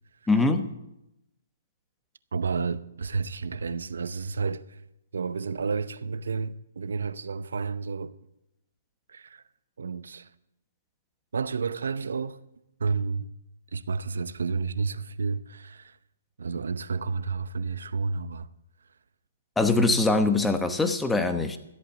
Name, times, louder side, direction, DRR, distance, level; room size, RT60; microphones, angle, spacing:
voice 1, 0.3-0.7 19.6-21.6, left 3 dB, 5° left, 1.0 m, -23 dB
voice 2, 2.3-4.8 5.1-8.1 9.1-9.4 9.8-10.3 11.3-12.4 12.8-13.3 13.7-16.0 16.4-18.5 19.7-20.0, right 4 dB, 75° right, 0.7 m, -31 dB
13.5 x 8.3 x 7.2 m
hypercardioid pair, 140°, 0 cm